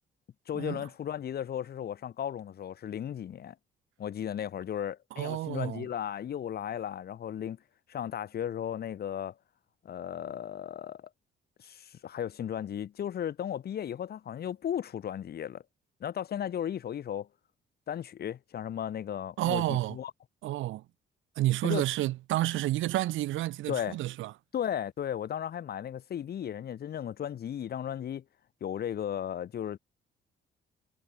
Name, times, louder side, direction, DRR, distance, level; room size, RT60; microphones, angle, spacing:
voice 1, 0.5-3.6 4.0-7.6 7.9-9.3 9.8-11.1 11.6-15.6 16.0-17.3 17.9-20.1 21.6-21.8 23.7-24.0 24.5-28.2 28.6-29.8, left 9 dB, 50° left, 0.9 m, -35 dB
voice 2, 5.2-5.9 19.4-20.0 20.4-20.8 21.4-24.3, right 16 dB, 80° right, 0.7 m, -30 dB
cardioid pair, 90°, 20 cm